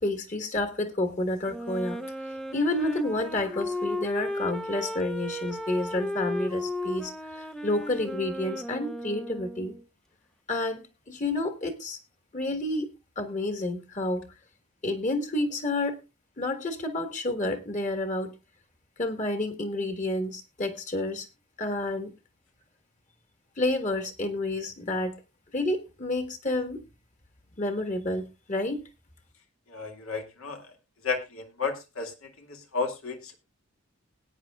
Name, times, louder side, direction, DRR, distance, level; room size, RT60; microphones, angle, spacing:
voice 1, 0.0-2.0 2.5-9.7 10.5-12.0 12.3-12.9 13.1-14.3 14.8-16.0 16.4-18.3 19.0-21.3 21.6-22.1 23.6-25.2 25.5-26.8 27.6-28.8, left 2 dB, 35° left, 7 dB, 1.5 m, -30 dB
Wind instrument woodwind instrument, 1.5-9.8, left 1 dB, ahead, 0.5 m, -35 dB
voice 2, 29.7-30.7 31.0-33.3, left 4 dB, 80° left, 4 dB, 2.1 m, -33 dB
20.0 x 9.1 x 2.4 m, 0.24 s
head